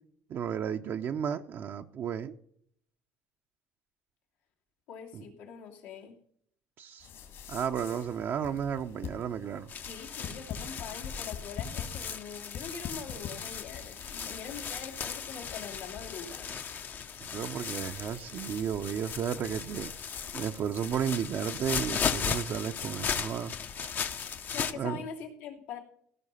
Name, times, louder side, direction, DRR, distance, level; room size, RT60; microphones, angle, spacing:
voice 1, 0.3-2.4 5.1-5.2 6.8-7.1 7.5-9.7 17.2-19.9 20.3-23.5 23.8-23.9 24.7-25.0, right 8 dB, 55° right, 0.7 m, -33 dB
voice 2, 4.9-6.2 9.8-16.6 17.1-17.3 24.5-25.8, left 7 dB, 85° left, 2.7 m, -43 dB
sound 1, 7.0-24.7, left 7 dB, 65° left, 2.6 m, -47 dB
sound 2, 9.7-24.7, left 7 dB, 45° left, 0.8 m, -37 dB
16.5 x 5.5 x 5.5 m
supercardioid pair, 90°, 5 cm